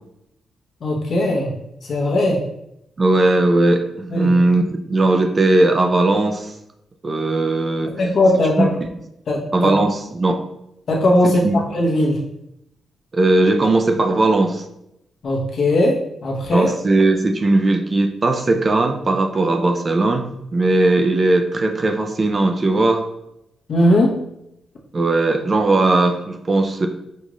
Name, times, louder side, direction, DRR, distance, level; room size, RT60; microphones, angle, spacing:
voice 1, 0.8-1.5 1.8-2.4 4.1-4.3 8.0-8.7 9.3-9.7 10.9-12.2 15.2-15.9 16.2-16.7 23.7-24.1, left 1 dB, 55° left, -2 dB, 1.0 m, -18 dB
voice 2, 3.0-6.5 7.0-7.9 8.6-8.7 9.5-10.4 11.2-11.6 13.1-14.6 16.5-23.1 24.9-26.9, right 2 dB, 30° right, 5 dB, 0.4 m, -18 dB
5.4 x 2.4 x 3.1 m, 0.81 s
wide cardioid pair, 145°, 0 cm